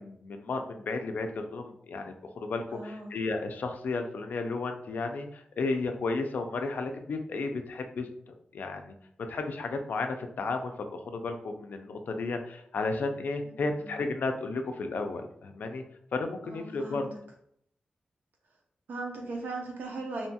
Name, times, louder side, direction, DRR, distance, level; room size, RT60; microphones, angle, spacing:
voice 1, 0.0-8.9 9.3-15.8 16.1-17.1, left 3 dB, 70° left, 5 dB, 0.3 m, -33 dB
voice 2, 2.7-3.1 13.4-13.5 13.8-13.9 16.4-17.1 18.9-20.3, right 2 dB, 80° right, 1 dB, 0.6 m, -38 dB
2.7 x 2.2 x 2.7 m, 0.70 s
wide cardioid pair, 135°, 3 cm